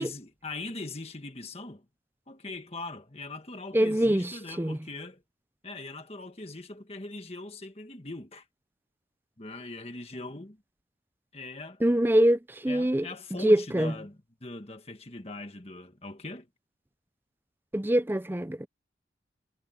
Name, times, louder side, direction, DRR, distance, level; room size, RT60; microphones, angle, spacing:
voice 1, 0.0-1.8 2.3-5.2 5.6-8.4 9.4-10.6 11.3-11.8 12.7-16.5, left 2 dB, 30° left, 1.6 m, -41 dB
voice 2, 3.7-4.8 11.8-13.1 13.4-13.9 17.7-18.7, right 1 dB, 10° right, 0.5 m, -24 dB
head